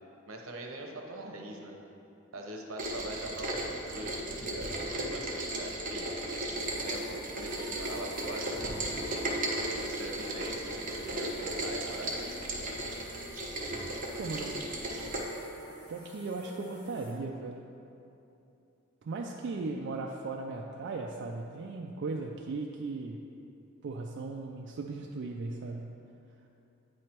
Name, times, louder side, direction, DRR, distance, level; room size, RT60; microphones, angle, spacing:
voice 1, 0.3-1.8 2.3-6.1 6.7-8.6 9.3-9.4 9.7-12.3, right 1 dB, 80° right, 1 dB, 0.8 m, -42 dB
Rain, 2.8-15.2, right 1 dB, 40° right, 0.9 m, -35 dB
sound 1, 6.5-17.1, left 1 dB, 55° left, 1.4 m, -51 dB
voice 2, 14.2-14.6 15.9-17.6 19.0-23.2 23.8-26.0, right 3 dB, 60° right, 0 dB, 0.3 m, -37 dB
9.2 x 3.2 x 4.4 m, 2.8 s
head